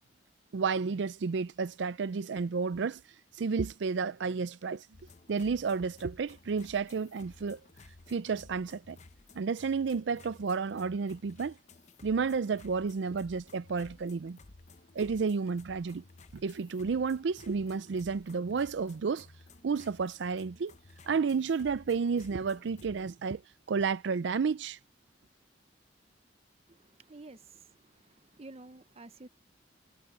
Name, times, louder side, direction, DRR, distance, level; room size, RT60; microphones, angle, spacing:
voice 1, 0.5-3.0 3.3-4.9 5.3-7.6 8.1-9.0 9.4-11.6 12.0-14.4 14.9-16.0 16.3-19.3 19.6-20.7 21.1-23.4 23.7-24.8, right 5 dB, 75° right, 0.4 m, -31 dB
sound 1, 4.9-23.1, left 3 dB, 40° left, 0.8 m, -56 dB
voice 2, 26.7-29.3, right 2 dB, 35° right, 0.8 m, -51 dB
head